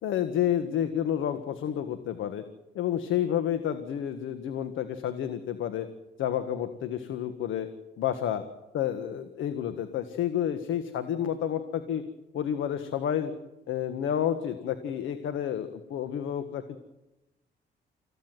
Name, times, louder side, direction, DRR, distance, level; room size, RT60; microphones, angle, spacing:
voice 1, 0.0-2.4 2.7-5.9 6.2-7.7 8.0-8.4 8.7-12.0 12.3-13.3 13.7-16.8, left 10 dB, 80° left, 10 dB, 1.7 m, -30 dB
26.5 x 15.5 x 9.2 m, 0.95 s
cardioid pair, 90°, 20 cm